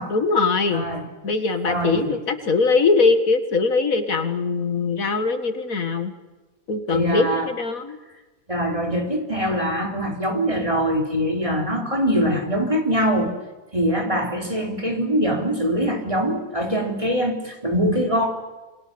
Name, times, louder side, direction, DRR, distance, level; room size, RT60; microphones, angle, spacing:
voice 1, 0.1-0.9 1.2-6.1 6.7-8.0, left 4 dB, 70° left, 8 dB, 2.2 m, -21 dB
voice 2, 0.7-1.1 1.7-2.2 6.9-7.5 8.5-13.4 13.7-18.3, equal, 20° right, 2 dB, 3.6 m, -23 dB
28.5 x 23.0 x 6.9 m, 1.2 s
omnidirectional pair, 1.5 m